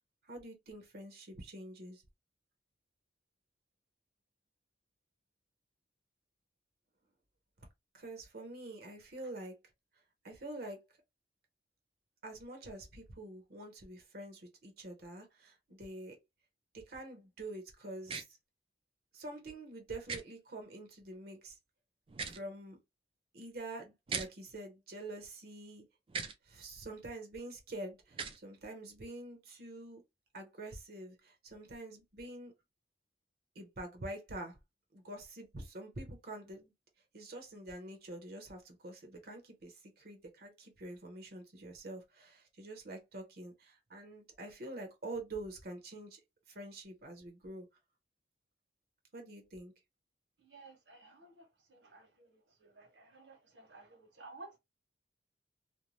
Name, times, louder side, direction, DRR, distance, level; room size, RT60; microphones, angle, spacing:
voice 1, 0.2-2.0 7.9-9.6 10.2-10.8 12.2-16.2 16.7-18.4 19.1-21.6 22.2-22.8 23.3-25.8 26.4-30.0 30.3-32.5 33.5-34.6 34.9-36.7 37.1-46.2 46.5-47.7 49.1-49.7, right 2 dB, 55° right, 0.7 m, -46 dB
sound 1, 18.1-18.2 20.1-20.2 22.1-22.4 24.1-24.3 26.1-26.3 28.1-28.4, right 5 dB, 30° right, 0.3 m, -38 dB
voice 2, 50.4-54.6, right 3 dB, 80° right, 1.2 m, -55 dB
2.6 x 2.0 x 3.1 m
head